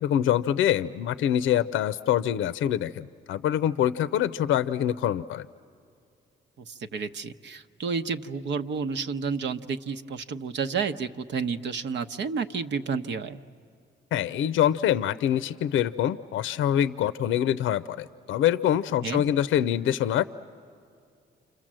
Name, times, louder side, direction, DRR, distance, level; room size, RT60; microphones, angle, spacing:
voice 1, 0.0-5.5 14.1-20.2, left 10 dB, 80° left, 14 dB, 0.6 m, -25 dB
voice 2, 6.6-13.4 19.0-19.2, right 5 dB, 65° right, 8 dB, 1.0 m, -31 dB
29.5 x 26.5 x 7.6 m, 2.4 s
cardioid pair, 90°, 20 cm